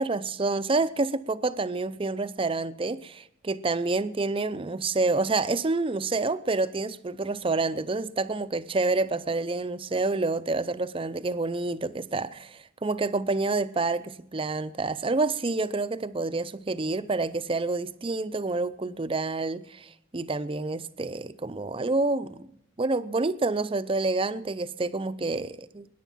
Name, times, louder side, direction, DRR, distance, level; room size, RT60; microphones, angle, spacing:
voice 1, 0.0-22.5 22.8-25.9, right 3 dB, 25° right, 0.5 m, -28 dB
21.0 x 10.0 x 5.7 m
head